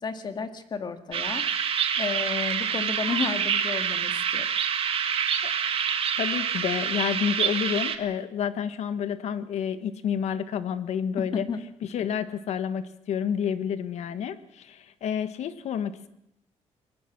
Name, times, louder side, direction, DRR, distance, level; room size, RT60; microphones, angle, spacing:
voice 1, 0.0-1.4 2.0-4.4 11.2-11.6, left 5 dB, 40° left, 8 dB, 2.1 m, -32 dB
sound 1, 1.1-8.0, right 7 dB, 55° right, 1.9 m, -27 dB
voice 2, 6.2-11.5 11.9-16.1, left 8 dB, 75° left, 11 dB, 1.5 m, -29 dB
24.5 x 21.0 x 6.1 m, 0.79 s
cardioid pair, 145°, 12 cm